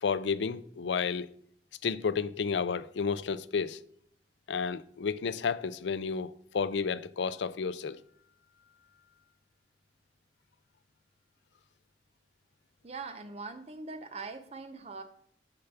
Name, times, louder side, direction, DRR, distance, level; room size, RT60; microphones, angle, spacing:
voice 1, 0.0-1.3 1.8-3.8 4.5-8.0, left 5 dB, 75° left, 0.4 m, -31 dB
voice 2, 12.8-15.0, right 3 dB, 35° right, 0.7 m, -42 dB
6.7 x 5.8 x 6.8 m
head